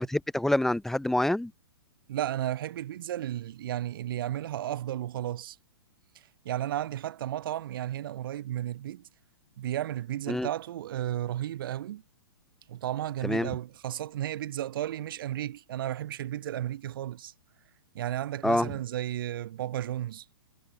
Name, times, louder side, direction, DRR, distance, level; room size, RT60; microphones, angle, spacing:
voice 1, 0.0-1.5 10.3-10.5 13.2-13.5 18.4-18.7, left 1 dB, 5° left, 2.7 m, -26 dB
voice 2, 2.1-5.6 6.4-9.0 9.6-12.0 12.7-17.3 17.9-20.2, right 12 dB, 60° right, 5.2 m, -33 dB
hypercardioid pair, 125°, 13 cm